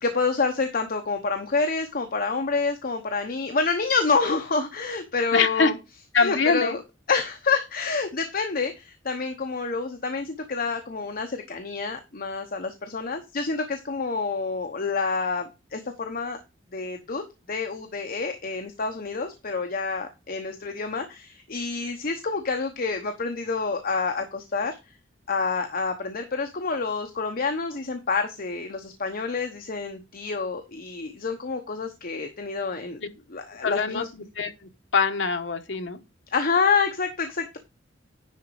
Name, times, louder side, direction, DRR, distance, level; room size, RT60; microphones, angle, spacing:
voice 1, 0.0-5.7 6.2-6.8 7.1-16.4 16.7-17.2 17.5-24.8 25.3-33.0 33.3-34.1 36.3-37.6, left 4 dB, 50° left, 0.9 m, -28 dB
voice 2, 5.3-5.7 6.1-6.8 33.0-33.1 33.6-36.0, left 4 dB, 70° left, 1.0 m, -24 dB
10.0 x 4.0 x 4.7 m
head